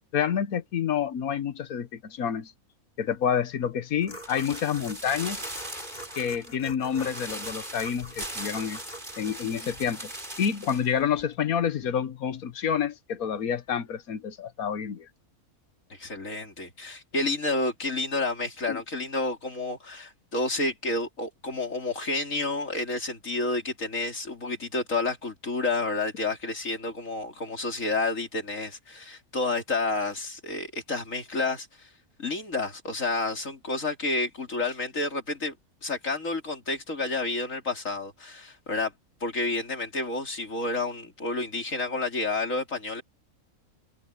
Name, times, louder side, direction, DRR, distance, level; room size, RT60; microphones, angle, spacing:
voice 1, 0.1-2.5 3.0-5.4 6.2-8.8 9.2-10.1 10.4-15.1 18.7-18.8, left 8 dB, 85° left, 1.5 m, -28 dB
sound 1, 4.0-9.3, equal, 30° left, 4.4 m, -45 dB
sound 2, 4.2-10.9 11.2-11.3, right 1 dB, 35° right, 6.8 m, -39 dB
voice 2, 15.9-31.9 32.2-35.6 35.8-38.9 39.2-43.0, left 3 dB, 65° left, 3.8 m, -30 dB
omnidirectional pair, 1.5 m